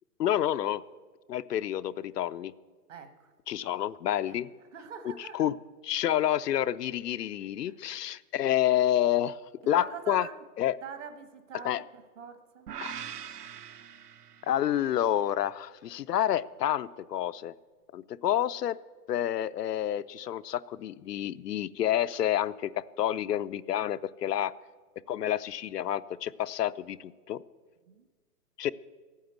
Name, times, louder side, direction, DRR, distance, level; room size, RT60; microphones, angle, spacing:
voice 1, 0.2-0.8 1.3-2.5 3.5-4.5 5.0-5.5 5.8-10.3 10.6-10.8 11.6-11.8 12.8-12.9 14.5-17.5 17.9-18.8 19.1-24.5 25.1-27.4 28.6-28.7, left 11 dB, 85° left, 14 dB, 0.6 m, -29 dB
voice 2, 2.9-3.3 4.3-4.4 4.7-5.4 9.7-10.4 10.8-12.7 27.9-28.1, right 7 dB, 50° right, 9 dB, 1.3 m, -44 dB
sound 1, 12.7-14.9, right 9 dB, 75° right, 0.9 m, -42 dB
13.0 x 9.3 x 8.0 m, 1.4 s
hypercardioid pair, 175°, 47 cm